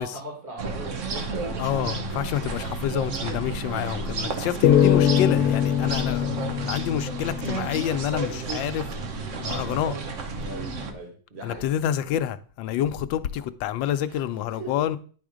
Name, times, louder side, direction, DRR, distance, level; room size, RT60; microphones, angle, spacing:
voice 1, 0.0-1.6 10.4-11.7 14.1-14.2 14.6-14.9, right 2 dB, 30° right, 2.2 m, -39 dB
sound 1, 0.6-10.9, right 4 dB, 50° right, 1.1 m, -32 dB
voice 2, 1.6-6.3 6.6-8.9 9.4-10.0 11.4-15.0, left 10 dB, 85° left, 1.3 m, -28 dB
sound 2, 4.6-8.0, left 10 dB, 70° left, 1.0 m, -22 dB
10.0 x 3.5 x 5.0 m
omnidirectional pair, 2.0 m